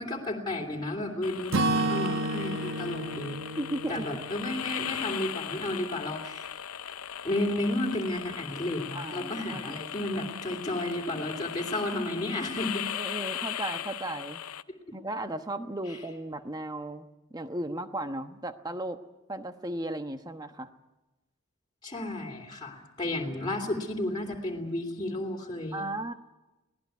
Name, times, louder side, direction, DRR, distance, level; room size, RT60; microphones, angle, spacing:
voice 1, 0.0-3.4 3.9-6.5 7.2-12.9 21.8-25.9, left 1 dB, 20° left, -1 dB, 3.2 m, -32 dB
sound 1, 1.2-14.6, left 10 dB, 90° left, 0.7 m, -38 dB
Acoustic guitar / Strum, 1.5-5.5, right 2 dB, 60° right, 1.5 m, -31 dB
voice 2, 3.6-4.2 8.9-9.8 12.9-14.4 14.9-17.1 17.3-19.0 19.3-20.7 25.7-26.1, right 1 dB, 20° right, 8 dB, 1.2 m, -35 dB
23.5 x 18.0 x 9.4 m, 1.0 s
head